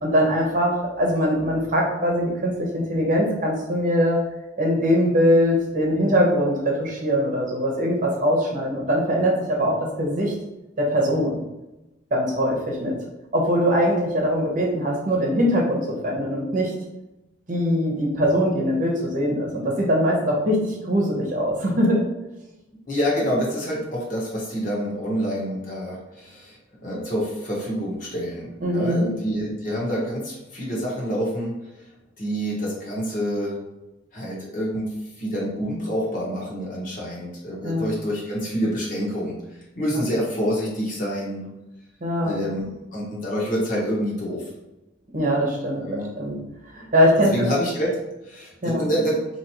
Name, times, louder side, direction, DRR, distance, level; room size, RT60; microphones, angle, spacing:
voice 1, 0.0-4.2 4.6-10.3 10.8-11.4 12.1-12.9 13.3-16.7 17.5-22.0 28.6-29.1 37.6-37.9 42.0-42.3 45.1-45.8 46.2-46.4 46.7-47.3 48.6-48.9, equal, 45° right, -1 dB, 1.0 m, -22 dB
voice 2, 22.8-26.6 26.8-31.5 32.2-33.5 34.1-34.9 35.2-39.4 39.8-41.5 42.2-44.5 45.8-46.1 47.3-47.9 48.2-49.2, equal, 45° left, -4 dB, 1.3 m, -27 dB
4.5 x 3.0 x 3.0 m, 0.98 s
head